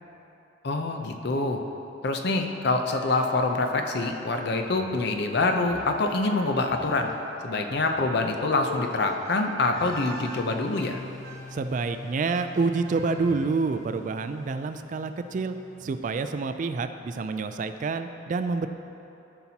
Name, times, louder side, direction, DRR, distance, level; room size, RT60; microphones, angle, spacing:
voice 1, 0.6-1.6 2.0-7.1 7.4-11.0, left 3 dB, 60° left, 4 dB, 0.6 m, -26 dB
sound 1, 2.9-13.5, equal, 55° right, 1.8 m, -43 dB
sound 2, 9.8-16.6, left 3 dB, 85° left, 1.6 m, -45 dB
voice 2, 11.5-15.6 15.8-18.7, right 4 dB, 40° right, 9 dB, 0.3 m, -28 dB
13.5 x 5.8 x 2.8 m, 2.9 s
head